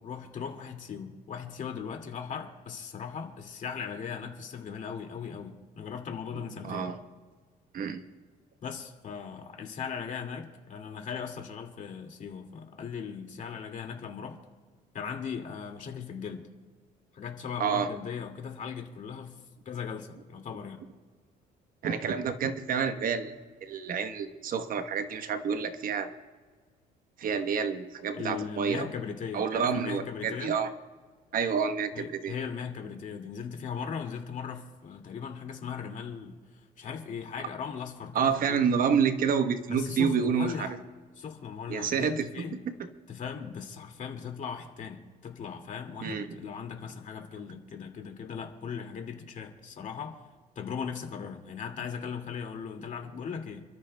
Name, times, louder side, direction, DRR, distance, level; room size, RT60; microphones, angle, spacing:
voice 1, 0.0-6.9 8.6-14.4 14.9-16.4 17.1-20.8 28.1-30.5 31.9-36.4 36.8-38.6 39.7-40.7 41.2-42.6 43.1-50.2 50.6-53.6, left 6 dB, 50° left, 3 dB, 2.2 m, -38 dB
voice 2, 6.3-7.0 7.7-8.0 17.6-17.9 21.8-23.3 23.6-26.1 27.2-28.9 29.3-30.7 31.3-32.3 38.1-40.7 41.7-42.4 46.0-46.4, right 6 dB, 55° right, 9 dB, 1.1 m, -28 dB
29.5 x 13.5 x 2.2 m, 1.5 s
cardioid pair, 110°, 17 cm